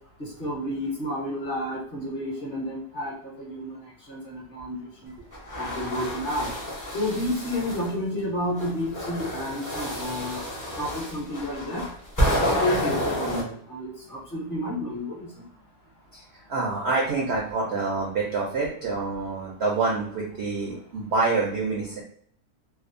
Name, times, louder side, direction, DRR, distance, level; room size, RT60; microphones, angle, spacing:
voice 1, 0.2-5.1 5.6-6.5 6.9-10.4 10.8-11.9 12.5-15.4, left 1 dB, 45° left, -5 dB, 0.8 m, -31 dB
sound 1, 5.3-7.9 8.6-13.4, equal, 30° left, 0.3 m, -29 dB
voice 2, 16.5-22.0, right 3 dB, 65° right, -3 dB, 0.6 m, -27 dB
2.7 x 2.0 x 2.5 m, 0.63 s
omnidirectional pair, 1.6 m